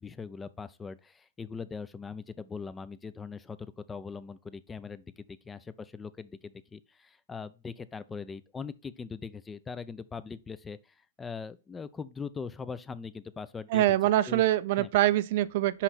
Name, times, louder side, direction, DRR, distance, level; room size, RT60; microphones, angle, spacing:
voice 1, 0.0-13.8 14.3-14.4 14.8-14.9, left 5 dB, 15° left, 0.4 m, -41 dB
voice 2, 13.7-15.8, right 14 dB, 50° right, 0.5 m, -24 dB
5.7 x 4.8 x 4.2 m
hypercardioid pair, 115°, 0 cm